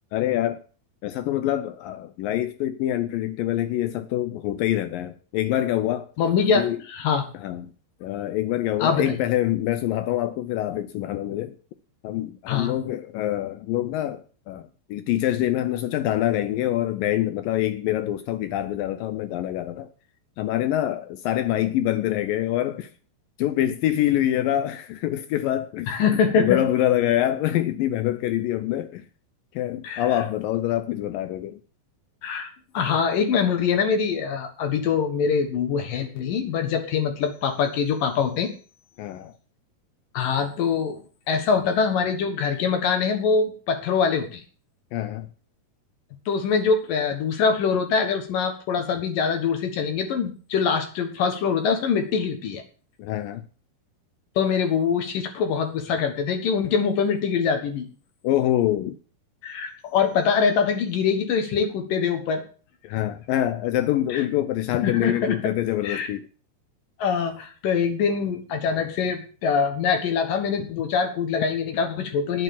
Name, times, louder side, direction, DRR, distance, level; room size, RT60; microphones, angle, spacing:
voice 1, 0.1-0.6 1.0-6.1 6.6-6.8 7.3-7.7 8.0-11.6 12.0-19.9 20.4-22.9 23.4-25.9 26.4-29.1 29.5-31.6 39.0-39.3 44.9-45.3 53.0-53.4 58.2-59.0 62.8-66.3 70.6-70.7, left 13 dB, 80° left, 2.0 m, -25 dB
voice 2, 6.2-7.2 8.8-9.2 12.5-12.7 25.9-26.6 29.8-30.1 32.2-32.5 32.7-38.5 40.1-41.0 41.3-44.4 46.3-52.6 54.4-57.9 59.4-62.4 64.1-64.2 64.8-65.5 65.8-66.1 67.0-72.4, left 6 dB, 65° left, 2.9 m, -24 dB
9.9 x 9.2 x 7.2 m
omnidirectional pair, 4.7 m